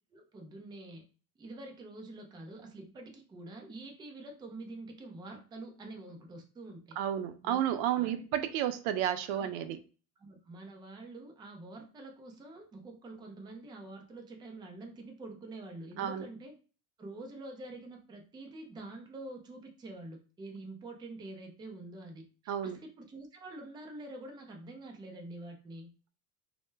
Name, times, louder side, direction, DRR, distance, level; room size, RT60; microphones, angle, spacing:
voice 1, 0.1-1.0 1.4-7.0 7.4-7.6 7.9-8.1 9.3-9.5 10.2-16.5 17.0-25.9, right 2 dB, 10° right, 0.4 m, -46 dB
voice 2, 7.0-9.8 16.0-16.3 22.5-22.8, right 10 dB, 75° right, 0.5 m, -31 dB
2.1 x 2.1 x 3.1 m
supercardioid pair, 120°, 42 cm